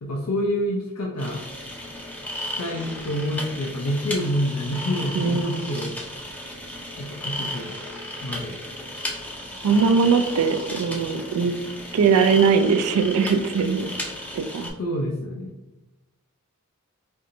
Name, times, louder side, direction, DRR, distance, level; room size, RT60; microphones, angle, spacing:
voice 1, 0.0-1.4 2.4-6.0 7.0-7.7 8.2-8.6 14.8-15.5, equal, 75° left, -2 dB, 0.5 m, -27 dB
sound 1, 1.2-14.7, left 1 dB, 5° left, 0.5 m, -34 dB
voice 2, 5.1-5.4 9.6-11.6 11.9-13.9 14.3-14.7, right 5 dB, 75° right, 8 dB, 0.4 m, -20 dB
4.5 x 2.6 x 2.5 m, 0.98 s
head